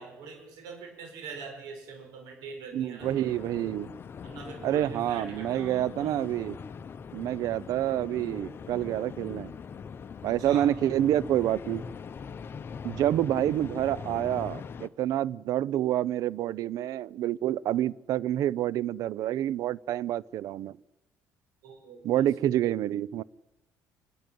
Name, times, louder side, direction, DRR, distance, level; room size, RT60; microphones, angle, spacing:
voice 1, 0.0-3.5 4.2-6.2 10.4-10.7 21.6-22.2, right 4 dB, 80° right, 6.7 m, -43 dB
voice 2, 2.7-3.9 4.6-6.6 7.1-9.5 10.2-11.8 12.8-20.8 22.0-23.2, right 12 dB, 65° right, 0.6 m, -28 dB
sound 1, 3.0-14.9, left 6 dB, 35° left, 0.9 m, -42 dB
26.0 x 12.5 x 9.4 m
cardioid pair, 115°, 6 cm